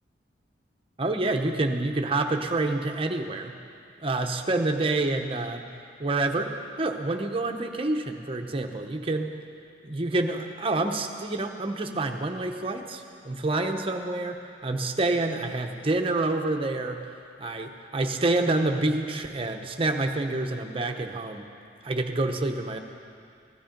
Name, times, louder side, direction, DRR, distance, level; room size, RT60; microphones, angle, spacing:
voice 1, 1.0-3.6 4.0-5.7 6.0-6.5 6.8-9.3 9.8-17.0 17.4-21.5 21.8-22.8, right 2 dB, 30° right, 4 dB, 0.8 m, -27 dB
16.5 x 12.0 x 5.2 m, 2.4 s
head